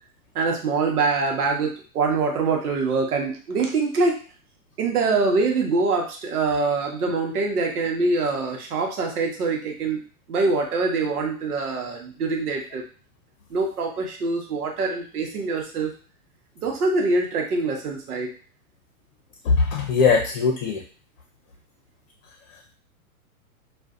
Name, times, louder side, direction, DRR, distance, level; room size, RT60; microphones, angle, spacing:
voice 1, 0.3-4.2 4.8-10.0 10.3-12.8 13.5-15.9 16.6-18.3, right 3 dB, 90° right, 2 dB, 0.9 m, -24 dB
voice 2, 19.4-20.8 22.5-22.7, left 5 dB, 65° left, 2 dB, 0.7 m, -21 dB
2.6 x 2.2 x 2.3 m, 0.39 s
hypercardioid pair, 125°, 44 cm